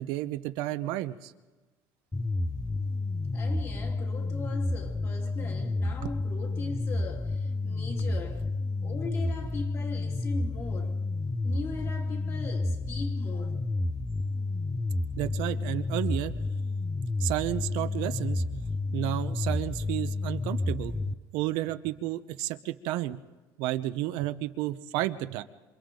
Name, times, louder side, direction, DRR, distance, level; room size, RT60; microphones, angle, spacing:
voice 1, 0.0-1.3 15.2-16.4 17.2-18.6 18.9-23.2 23.6-25.4, right 15 dB, 75° right, 0.9 m, -32 dB
sound 1, 2.1-21.1, left 2 dB, 10° left, 0.7 m, -30 dB
voice 2, 3.3-8.5 8.8-11.0 11.4-13.7, left 3 dB, 35° left, 2.6 m, -40 dB
28.0 x 25.5 x 3.9 m
cardioid pair, 145°, 8 cm